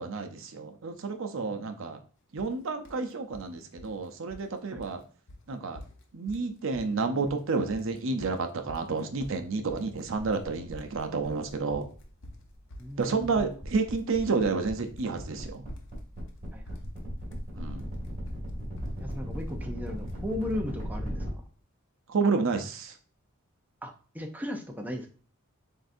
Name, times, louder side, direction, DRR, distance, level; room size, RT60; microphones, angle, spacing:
voice 1, 0.0-2.0 2.3-5.0 5.5-5.8 6.1-11.9 13.0-15.6 17.5-17.9 22.1-22.9, right 4 dB, 65° right, 6 dB, 0.6 m, -30 dB
sound 1, 2.4-2.5 2.8-3.5 3.8-4.5 4.8-5.0 5.3-5.4 5.7-6.5 6.7-7.4 7.7-20.5, left 1 dB, 65° left, 0.8 m, -47 dB
sound 2, 9.8-21.3, equal, 40° right, 2.4 m, -39 dB
voice 2, 12.8-13.6 16.5-16.6 19.0-21.3 23.8-25.1, left 1 dB, 10° right, 3 dB, 0.5 m, -36 dB
7.5 x 2.6 x 2.6 m, 0.39 s
head